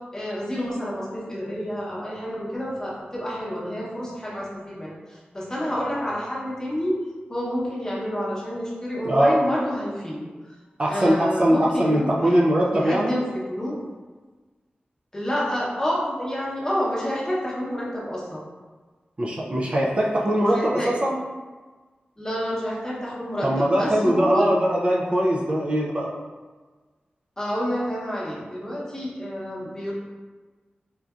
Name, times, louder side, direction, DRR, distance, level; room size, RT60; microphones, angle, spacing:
voice 1, 0.1-7.0 7.3-10.3 10.9-12.4 12.7-13.8 15.1-18.4 20.5-20.9 22.2-24.5 27.4-29.9, equal, 20° left, -6 dB, 0.8 m, -29 dB
voice 2, 9.0-9.4 10.8-13.2 19.2-21.2 23.4-26.1, equal, 35° right, -3 dB, 0.4 m, -21 dB
4.3 x 2.5 x 2.4 m, 1.3 s
wide cardioid pair, 115°, 3 cm